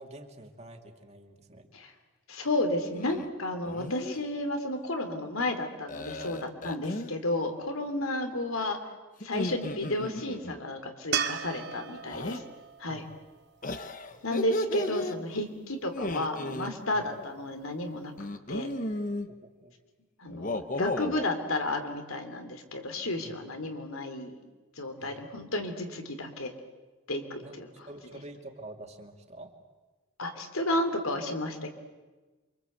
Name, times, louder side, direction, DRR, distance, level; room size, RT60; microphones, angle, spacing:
voice 1, 0.0-1.7 6.2-6.3 11.7-12.2 12.9-13.0 14.1-14.3 16.9-17.1 19.3-19.7 23.2-23.3 25.0-25.3 27.4-27.6 27.9-29.5, right 1 dB, 30° right, 3 dB, 2.6 m, -47 dB
voice 2, 2.3-8.8 9.2-12.4 12.8-13.0 14.2-18.1 18.5-18.7 20.2-24.4 24.8-26.5 27.1-27.7 30.2-31.7, left 1 dB, 85° left, 6 dB, 3.3 m, -32 dB
sound 1, 2.9-3.3 3.7-4.2 5.9-7.1 9.2-10.6 12.0-12.4 13.6-15.2 15.9-16.7 18.2-19.3 20.3-21.3, left 2 dB, 40° left, 1.2 m, -34 dB
sound 2, 11.1-14.4 17.6-17.7, right 7 dB, 50° right, 1.3 m, -36 dB
28.5 x 25.0 x 8.1 m, 1.2 s
head